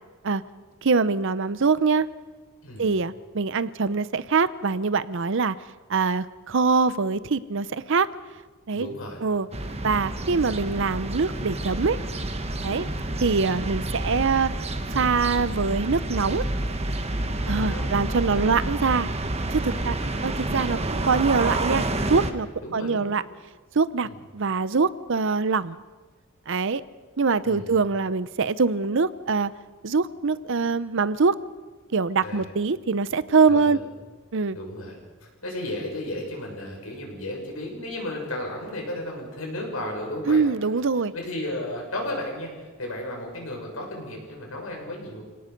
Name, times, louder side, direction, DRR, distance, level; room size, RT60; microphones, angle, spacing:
voice 1, 0.8-2.1 2.8-5.6 5.9-8.1 8.7-8.9 9.2-9.5 9.8-12.0 12.6-12.9 13.2-14.5 14.9-16.4 17.5-19.1 19.5-20.0 20.2-21.8 22.1-23.2 23.7-24.1 24.3-25.8 26.5-26.8 27.2-29.5 29.8-31.4 31.9-33.8 34.3-34.6 40.3-41.1, right 4 dB, 65° right, 16 dB, 0.7 m, -23 dB
voice 2, 8.7-9.2 12.6-12.9 17.2-17.9 18.3-18.5 19.7-20.2 22.6-23.1 24.0-24.2 27.4-27.8 32.2-32.5 33.5-33.8 34.5-35.0 35.4-40.4 41.1-45.3, left 1 dB, 90° left, 0 dB, 6.7 m, -34 dB
sound 1, 9.5-22.3, right 2 dB, 30° right, 1.3 m, -29 dB
28.0 x 18.0 x 5.3 m, 1.3 s
head